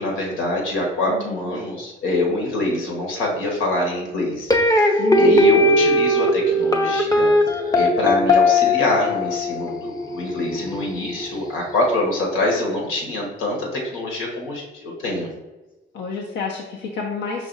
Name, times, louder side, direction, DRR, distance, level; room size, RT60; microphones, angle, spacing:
voice 1, 0.0-7.3 7.7-15.3, left 2 dB, 90° left, -1 dB, 1.3 m, -25 dB
voice 2, 1.1-1.5 5.0-5.5 5.8-5.9 15.9-17.5, left 5 dB, 70° left, -2 dB, 0.7 m, -29 dB
sound 1, 4.5-11.6, left 1 dB, 20° left, 0.6 m, -19 dB
4.9 x 2.5 x 3.9 m, 1.1 s
cardioid pair, 90°, 20 cm